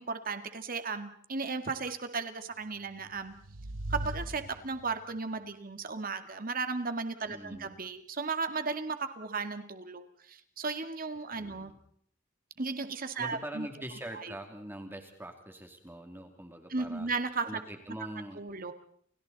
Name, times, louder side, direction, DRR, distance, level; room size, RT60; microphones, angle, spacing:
voice 1, 0.0-3.4 3.9-11.7 12.6-13.7 14.1-14.3 16.7-17.5 18.4-18.7, right 4 dB, 45° right, 8 dB, 2.0 m, -35 dB
sound 1, 2.8-5.2, right 1 dB, 85° right, 1.0 m, -40 dB
voice 2, 7.2-7.7 11.3-11.8 13.1-17.1 17.4-18.4, right 1 dB, 10° right, 4 dB, 2.7 m, -43 dB
30.0 x 29.5 x 4.1 m, 0.64 s
head